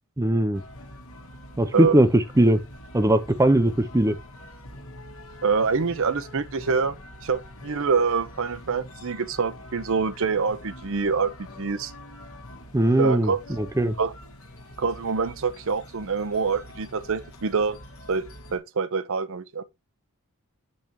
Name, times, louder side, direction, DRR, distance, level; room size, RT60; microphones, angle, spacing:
voice 1, 0.2-0.6 1.6-2.6 2.9-4.2 12.7-13.3 13.6-13.9, right 1 dB, 15° right, 0.5 m, -20 dB
sound 1, 0.5-18.6, left 1 dB, 70° left, 1.4 m, -44 dB
voice 2, 5.4-7.0 7.2-11.3 11.6-11.9 13.0-13.4 14.0-14.1 14.8-17.8 18.1-18.2 18.5-19.6, right 5 dB, 60° right, 0.6 m, -25 dB
6.9 x 5.4 x 3.0 m
head